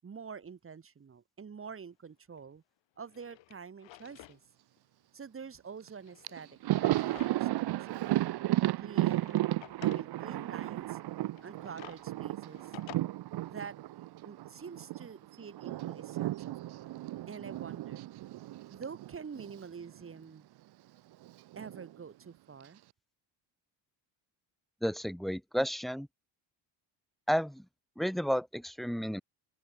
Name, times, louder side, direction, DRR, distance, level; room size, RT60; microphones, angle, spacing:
voice 1, 0.0-2.6 3.0-4.4 5.1-7.9 8.8-9.5 9.8-11.0 11.4-12.7 13.4-13.8 14.2-16.9 17.3-18.1 18.7-20.5 21.5-22.8, right 6 dB, 25° right, 6.7 m, -47 dB
Drawer open or close, 2.4-2.5 3.0-4.4 4.8-4.9 5.9-7.6 8.0-8.1 8.9-10.1 11.3-13.0, left 17 dB, 65° left, 2.4 m, -52 dB
Thunder, 5.9-6.0 6.2-15.1 15.3-19.6 19.9-20.1 21.2-21.9, right 15 dB, 55° right, 1.3 m, -34 dB
voice 2, 24.8-26.1 27.3-27.6 28.0-29.2, equal, ahead, 0.5 m, -32 dB
cardioid pair, 145°, 48 cm